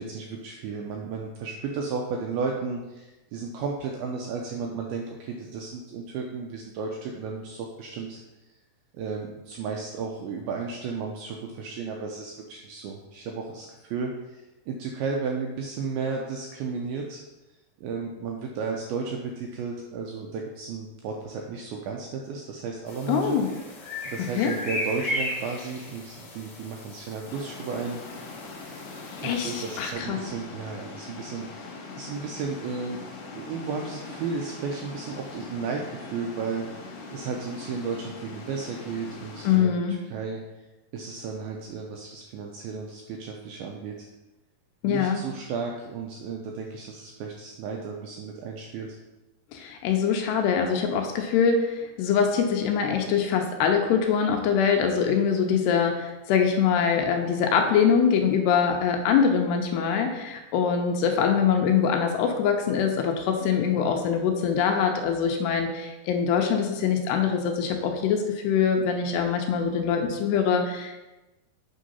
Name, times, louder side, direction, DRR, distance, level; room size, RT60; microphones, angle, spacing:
voice 1, 0.0-8.2 8.9-17.2 17.8-23.4 24.0-28.0 29.2-33.0 33.3-40.4 40.9-44.1 44.8-48.9, right 5 dB, 85° right, 1 dB, 2.1 m, -34 dB
sound 1, 22.9-29.9, left 1 dB, 45° left, 2.0 m, -36 dB
voice 2, 23.1-23.5 24.2-24.5 29.2-30.2 39.4-40.0 44.8-45.2 49.5-71.1, left 7 dB, 85° left, 4 dB, 2.7 m, -23 dB
sound 2, 27.3-39.6, left 3 dB, 65° left, 2.8 m, -42 dB
8.0 x 3.7 x 5.5 m, 1.0 s
omnidirectional pair, 5.0 m